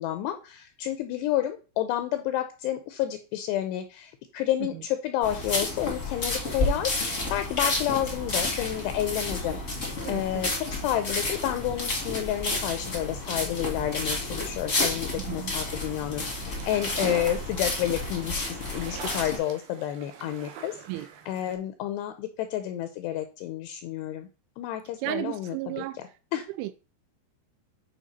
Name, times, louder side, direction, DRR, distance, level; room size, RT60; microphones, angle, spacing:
voice 1, 0.0-9.6 10.1-20.8 21.3-24.3 24.6-25.8 26.3-26.5, left 12 dB, 80° left, 2.6 m, -30 dB
sound 1, 5.2-19.4, left 2 dB, 35° left, 1.2 m, -31 dB
voice 2, 10.0-10.6 15.2-15.5 20.9-21.1 25.0-26.0 26.6-26.7, right 16 dB, 90° right, 3.0 m, -34 dB
sound 2, 16.2-21.5, right 7 dB, 65° right, 2.5 m, -42 dB
8.6 x 5.8 x 4.2 m
omnidirectional pair, 5.3 m